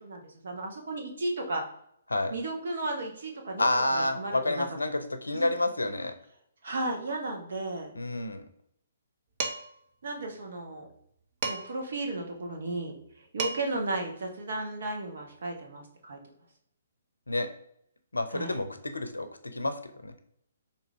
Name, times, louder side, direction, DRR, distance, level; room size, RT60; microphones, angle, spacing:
voice 1, 0.0-1.6 2.3-4.6 5.3-5.5 6.6-7.9 10.0-10.9 11.4-16.2 18.3-18.6, right 2 dB, 60° right, 1 dB, 1.3 m, -34 dB
voice 2, 3.6-6.1 8.0-8.4 17.3-17.5 18.1-19.3 19.5-19.7 20.0-20.1, left 2 dB, 80° left, 9 dB, 0.6 m, -29 dB
Dishes pots and pans, 9.4-9.8 11.4-11.9 13.1-13.2 13.4-13.9, right 4 dB, 40° right, 0.7 m, -34 dB
3.8 x 2.8 x 4.6 m, 0.70 s
figure-of-eight pair, 130°, 0 cm